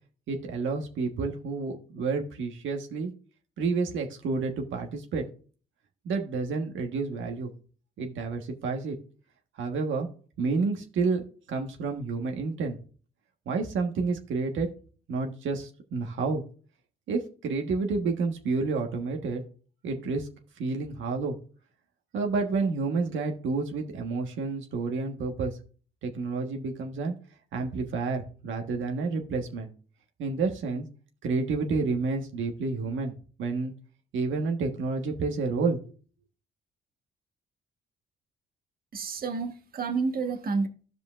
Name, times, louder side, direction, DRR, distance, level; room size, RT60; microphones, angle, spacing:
voice 1, 0.3-3.1 3.6-5.2 6.0-7.5 8.0-9.0 9.6-10.1 10.4-11.2 11.5-12.8 13.5-14.7 15.1-16.4 17.1-19.4 19.8-20.3 20.6-21.4 22.1-25.5 26.0-27.1 27.5-29.7 30.2-30.9 31.2-33.1 33.4-33.7 34.1-35.8, right 4 dB, 75° right, 3 dB, 1.4 m, -29 dB
voice 2, 38.9-40.7, right 4 dB, 50° right, 6 dB, 1.3 m, -29 dB
15.0 x 5.2 x 2.5 m, 0.40 s
cardioid pair, 90°, 20 cm